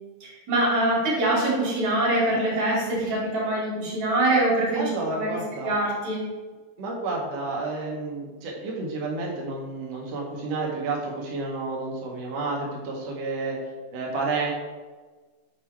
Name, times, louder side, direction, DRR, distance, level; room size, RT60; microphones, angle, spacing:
voice 1, 0.2-6.2, right 1 dB, 55° right, -6 dB, 3.2 m, -24 dB
voice 2, 4.7-5.7 6.8-13.6 13.9-14.5, right 3 dB, 80° right, -2 dB, 1.4 m, -30 dB
7.3 x 4.6 x 3.1 m, 1.3 s
omnidirectional pair, 4.2 m